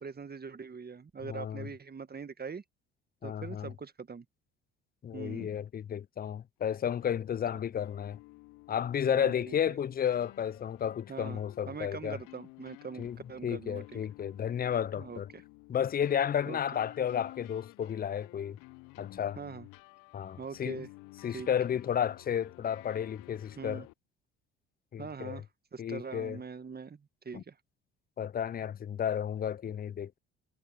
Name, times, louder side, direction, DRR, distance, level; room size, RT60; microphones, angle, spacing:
voice 1, 0.0-2.6 3.2-4.2 5.1-5.5 9.1-9.7 11.1-14.0 15.0-15.4 16.4-16.6 19.4-19.7 20.4-20.9 21.3-21.5 23.6-23.9 25.0-25.4 25.7-27.6, right 5 dB, 30° right, 1.8 m, -42 dB
voice 2, 1.3-1.7 3.2-3.7 5.0-8.2 8.7-12.2 13.0-13.2 13.4-15.3 15.7-18.6 19.0-19.4 20.1-20.8 21.2-23.8 24.9-25.4 25.8-26.4 27.3-27.4 28.2-30.2, left 9 dB, 25° left, 0.5 m, -32 dB
sound 1, 7.0-23.9, left 24 dB, 65° left, 1.0 m, -53 dB
hypercardioid pair, 55°, 34 cm